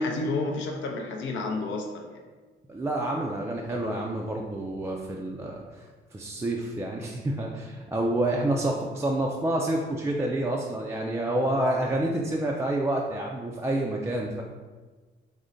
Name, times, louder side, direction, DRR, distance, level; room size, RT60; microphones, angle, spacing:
voice 1, 0.0-2.2, left 2 dB, 70° left, 1 dB, 0.6 m, -30 dB
voice 2, 2.7-5.6 6.1-14.4, right 1 dB, 15° right, -1 dB, 0.3 m, -28 dB
3.7 x 2.1 x 3.8 m, 1.3 s
cardioid pair, 90°, 20 cm